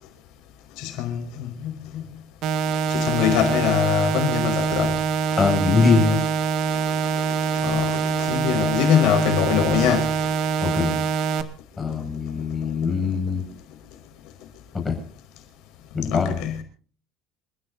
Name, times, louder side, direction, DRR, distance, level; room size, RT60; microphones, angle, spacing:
voice 1, 0.8-2.0 2.9-5.0 7.5-10.1 16.1-16.5, left 10 dB, 65° left, 5.2 m, -23 dB
sound 1, 2.4-11.4, right 6 dB, 50° right, 1.9 m, -24 dB
voice 2, 5.4-6.2 10.6-11.0 11.8-13.4 14.8-15.0 15.9-16.4, left 4 dB, 15° left, 6.1 m, -22 dB
28.0 x 15.5 x 2.7 m
cardioid pair, 170°, 0 cm